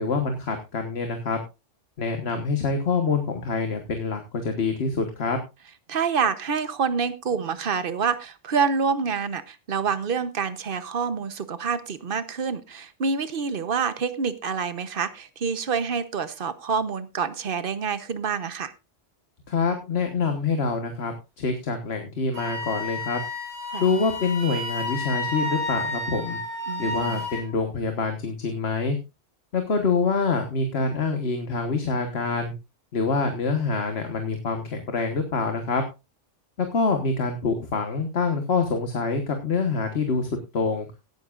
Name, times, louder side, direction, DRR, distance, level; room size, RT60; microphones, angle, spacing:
voice 1, 0.0-1.4 2.0-5.4 19.5-23.2 23.8-26.4 26.8-29.0 29.5-32.5 32.9-35.8 36.6-40.9, left 4 dB, 60° left, 5 dB, 1.6 m, -26 dB
voice 2, 5.9-18.7 23.7-23.8 26.7-27.3, right 6 dB, 50° right, 13 dB, 1.1 m, -27 dB
Wind instrument woodwind instrument, 22.3-27.5, left 2 dB, 25° right, 4.0 m, -31 dB
18.0 x 9.6 x 2.5 m, 0.26 s
omnidirectional pair, 1.3 m